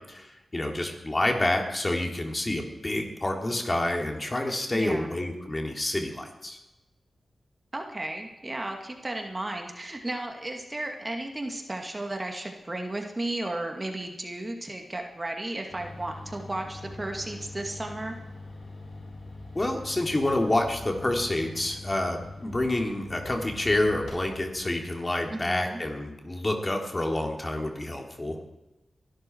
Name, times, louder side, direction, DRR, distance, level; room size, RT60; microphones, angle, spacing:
voice 1, 0.1-6.6 19.6-28.4, left 1 dB, 30° left, 2 dB, 3.3 m, -28 dB
voice 2, 4.7-5.1 7.7-18.2 25.3-25.8, right 2 dB, 30° right, 3 dB, 2.4 m, -34 dB
sound 1, 15.7-24.6, left 2 dB, 80° left, 7.7 m, -43 dB
22.5 x 12.5 x 4.8 m, 1.0 s
cardioid pair, 50°, 0 cm